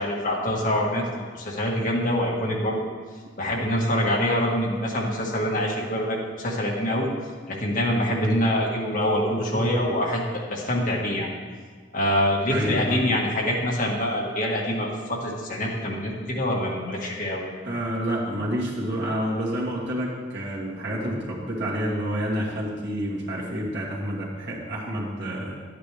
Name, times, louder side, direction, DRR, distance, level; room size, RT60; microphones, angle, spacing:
voice 1, 0.0-2.9 3.4-7.1 7.5-11.3 11.9-17.4, left 1 dB, 45° left, -3 dB, 1.7 m, -25 dB
voice 2, 12.5-13.0 17.6-25.6, equal, 65° right, -5 dB, 2.4 m, -29 dB
11.0 x 9.1 x 3.4 m, 1.6 s
head